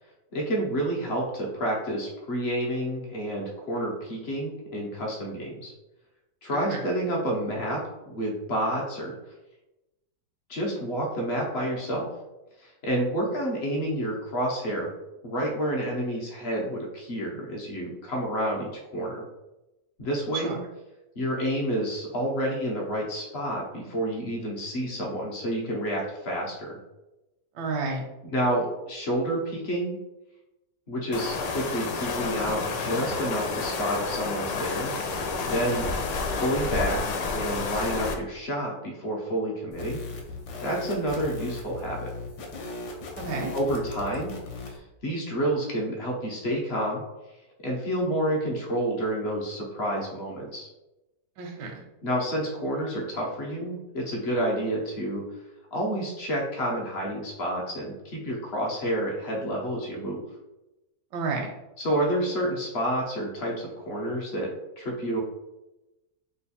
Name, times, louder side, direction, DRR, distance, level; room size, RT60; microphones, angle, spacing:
voice 1, 0.3-5.7 6.4-9.1 10.5-12.1 12.6-14.9 15.2-19.2 20.0-20.6 21.2-26.8 28.3-30.0 30.9-34.9 35.4-35.9 36.3-37.0 37.3-40.0 40.6-42.1 43.5-44.3 44.7-44.8 45.0-47.0 47.6-50.7 52.0-55.2 55.7-60.2 61.8-65.2, right 1 dB, 55° left, -1 dB, 0.7 m, -29 dB
voice 2, 6.5-6.8 20.3-20.6 27.5-28.0 43.2-43.5 51.4-51.8 61.1-61.5, right 4 dB, 85° right, 1 dB, 1.2 m, -31 dB
sound 1, 31.1-38.1, left 4 dB, 90° left, 1.2 m, -30 dB
sound 2, 39.7-44.8, left 3 dB, 70° left, 1.2 m, -38 dB
3.2 x 2.2 x 4.0 m, 0.99 s
omnidirectional pair, 1.8 m